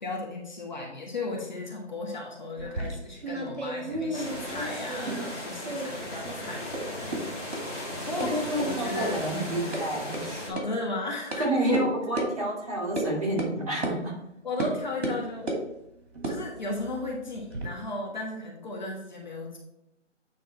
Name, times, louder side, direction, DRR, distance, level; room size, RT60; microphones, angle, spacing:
voice 1, 0.0-7.6 8.1-9.6 10.5-11.9 14.4-15.5 16.3-19.6, left 2 dB, 40° left, -1 dB, 1.2 m, -35 dB
sound 1, 2.6-5.4 5.6-6.4 6.7-6.8 7.1-7.2 7.5-7.6 8.2-8.3 8.6-8.7 9.0-9.1 9.4-9.8 10.1-10.2 10.6-10.7 11.3-11.4 11.7-11.8 12.2-12.3 13.0-13.1 13.4-13.5 13.8-14.0 14.6-14.7 15.0-15.6 16.1-17.7, right 2 dB, 65° right, 2.3 m, -33 dB
sound 2, 4.1-10.5, left 1 dB, 10° left, 1.6 m, -37 dB
voice 2, 8.2-10.5 11.4-14.2, right 1 dB, 30° right, -6 dB, 2.4 m, -29 dB
8.6 x 3.5 x 4.3 m, 0.84 s
figure-of-eight pair, 165°, 36 cm